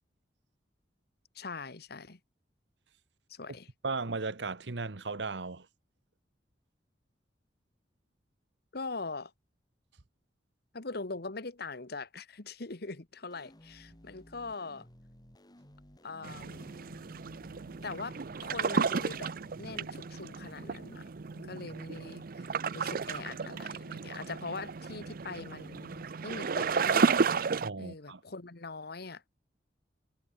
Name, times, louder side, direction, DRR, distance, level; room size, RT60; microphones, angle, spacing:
voice 1, 1.3-2.2 3.3-3.7 8.7-9.3 10.7-14.9 16.0-16.7 17.8-19.3 19.6-21.1 21.4-22.5 22.7-27.1 27.8-29.2, left 3 dB, 65° left, 1.5 m, -42 dB
voice 2, 3.8-5.7 27.6-28.2, right 3 dB, 80° right, 1.2 m, -36 dB
sound 1, 13.3-19.9, equal, 25° left, 2.6 m, -57 dB
sound 2, 16.2-27.7, right 5 dB, 55° right, 0.6 m, -33 dB
head